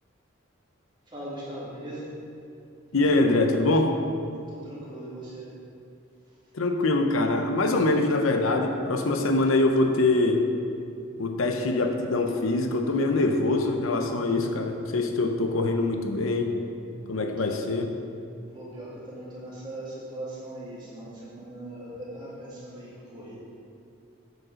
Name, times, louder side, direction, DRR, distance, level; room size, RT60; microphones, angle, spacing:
voice 1, 1.1-2.1 4.6-5.5 18.5-23.4, right 1 dB, 20° right, -7 dB, 2.2 m, -39 dB
voice 2, 2.9-4.0 6.5-10.4 11.2-16.5 17.1-17.9, left 2 dB, 85° left, 4 dB, 0.7 m, -24 dB
8.1 x 5.2 x 6.3 m, 2.5 s
head